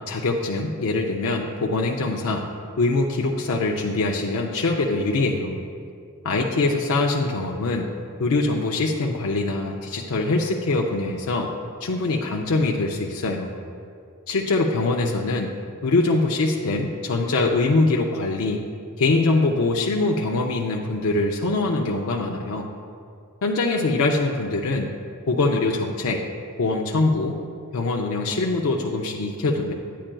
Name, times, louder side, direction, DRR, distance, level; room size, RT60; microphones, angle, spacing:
voice 1, 0.1-2.5 2.8-5.6 6.2-7.9 8.2-11.5 11.8-13.5 14.3-15.5 15.8-18.6 19.0-22.7 23.4-24.9 25.3-26.2 26.6-27.4 27.7-29.7, left 3 dB, 70° left, 0 dB, 0.5 m, -23 dB
10.0 x 8.6 x 2.2 m, 2.3 s
head